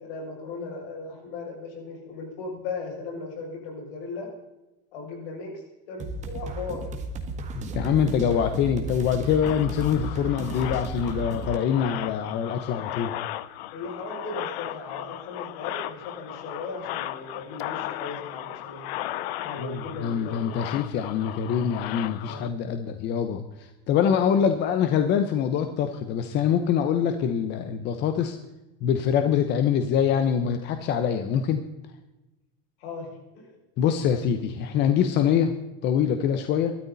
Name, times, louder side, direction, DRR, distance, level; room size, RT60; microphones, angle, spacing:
voice 1, 0.0-4.3 4.9-5.6 5.9-6.9 13.7-18.8 19.4-20.5 22.2-22.5 32.8-33.6, left 3 dB, 65° left, 0 dB, 7.2 m, -37 dB
sound 1, 6.0-11.6, right 2 dB, 25° right, 1.9 m, -34 dB
voice 2, 7.6-13.1 19.6-28.4 28.8-31.6 33.8-35.5 35.8-36.7, left 8 dB, 35° left, 8 dB, 1.1 m, -24 dB
sound 2, 9.4-22.5, left 15 dB, 80° left, 0.9 m, -36 dB
24.0 x 13.0 x 4.2 m, 1.0 s
cardioid pair, 170°, 30 cm